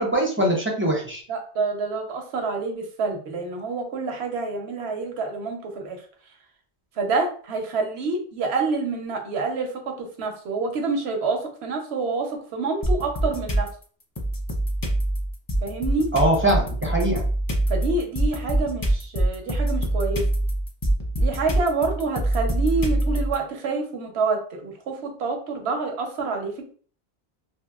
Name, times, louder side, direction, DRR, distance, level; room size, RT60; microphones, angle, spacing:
voice 1, 0.0-1.2 16.1-17.2, right 1 dB, 15° right, -2 dB, 0.5 m, -22 dB
voice 2, 1.3-6.0 7.0-13.7 15.6-16.1 17.7-20.2 21.2-26.7, right 4 dB, 90° right, 3 dB, 1.0 m, -27 dB
sound 1, 12.8-13.7 14.2-23.4, right 1 dB, 35° left, 0.4 m, -24 dB
2.8 x 2.8 x 2.3 m, 0.44 s
omnidirectional pair, 1.1 m